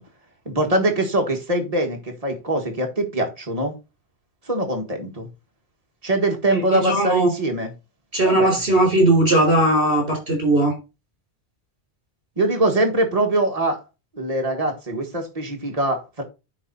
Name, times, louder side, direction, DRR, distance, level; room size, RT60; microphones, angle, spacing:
voice 1, 0.4-3.7 4.5-5.3 6.0-7.7 8.2-8.5 12.4-13.8 14.1-16.2, right 1 dB, 35° right, 1.7 m, -23 dB
voice 2, 6.5-7.3 8.1-10.7, right 1 dB, 60° right, 4.1 m, -18 dB
9.9 x 3.8 x 4.2 m
omnidirectional pair, 1.1 m